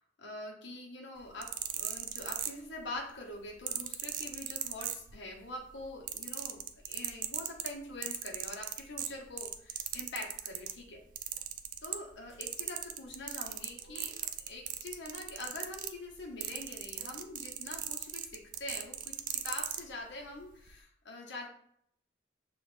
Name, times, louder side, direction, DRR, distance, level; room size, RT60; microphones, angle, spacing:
voice 1, 0.2-11.0 11.8-14.2 14.4-19.1 19.4-21.5, left 2 dB, 80° left, -1 dB, 1.0 m, -44 dB
sound 1, 1.2-3.0 3.7-5.4 5.7-10.8 11.2-12.2 12.4-19.8 20.6-20.7, right 11 dB, 45° right, 0.3 m, -37 dB
sound 2, 12.3-12.5 13.1-13.2 13.8-14.3 15.4-15.6 16.2-16.3 16.9-17.5, right 1 dB, 55° left, 1.9 m, -61 dB
6.1 x 2.5 x 3.4 m, 0.67 s
head